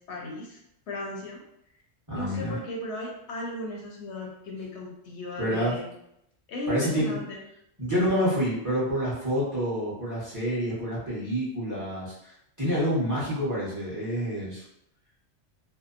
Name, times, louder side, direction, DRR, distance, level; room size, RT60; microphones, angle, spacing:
voice 1, 0.1-0.6 0.9-1.4 2.1-5.9 6.5-7.4, left 1 dB, 70° left, -1 dB, 0.8 m, -36 dB
voice 2, 2.1-2.6 5.4-5.8 6.7-7.2 7.8-14.6, equal, 15° right, -10 dB, 0.8 m, -28 dB
2.7 x 2.0 x 2.4 m, 0.78 s
omnidirectional pair, 1.3 m